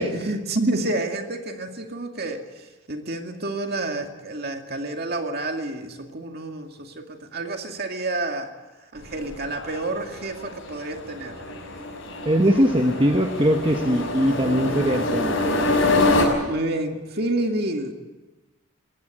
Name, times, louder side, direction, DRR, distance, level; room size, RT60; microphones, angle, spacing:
voice 1, 0.0-8.5 8.9-11.4 16.5-17.9, right 2 dB, 45° right, 4 dB, 2.2 m, -29 dB
sound 1, 9.0-16.3, left 2 dB, 65° left, 5.8 m, -26 dB
voice 2, 12.2-15.5, equal, 25° right, 3 dB, 1.2 m, -21 dB
21.5 x 17.5 x 9.0 m, 1.2 s
head